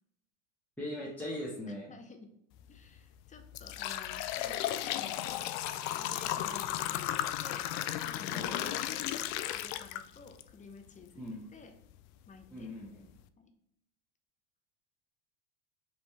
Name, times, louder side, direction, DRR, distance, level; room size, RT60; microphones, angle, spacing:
voice 1, 0.8-1.9 4.4-4.6 8.3-8.7 11.1-11.5 12.5-13.0, left 1 dB, 5° left, -7 dB, 1.2 m, -40 dB
voice 2, 1.7-2.3 2.7-4.2 4.6-5.3 5.9-7.8 8.0-8.9 9.5-11.8 12.3-12.8 13.4-13.5, left 4 dB, 20° left, 5 dB, 0.8 m, -52 dB
sound 1, 2.6-2.8 3.3-10.4 10.9-11.0 11.8-11.9 12.4-12.5 13.0-13.2, left 13 dB, 60° left, 0.5 m, -35 dB
5.3 x 3.0 x 3.2 m, 0.78 s
hypercardioid pair, 90°, 34 cm